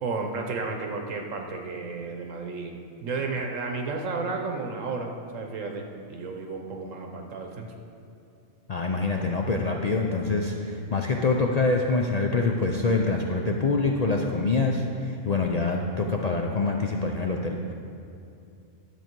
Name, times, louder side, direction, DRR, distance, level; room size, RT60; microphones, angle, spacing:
voice 1, 0.0-7.7, right 4 dB, 70° right, 3 dB, 1.1 m, -32 dB
voice 2, 8.7-17.7, left 3 dB, 80° left, 1 dB, 0.3 m, -25 dB
11.0 x 7.0 x 4.5 m, 2.6 s
omnidirectional pair, 1.4 m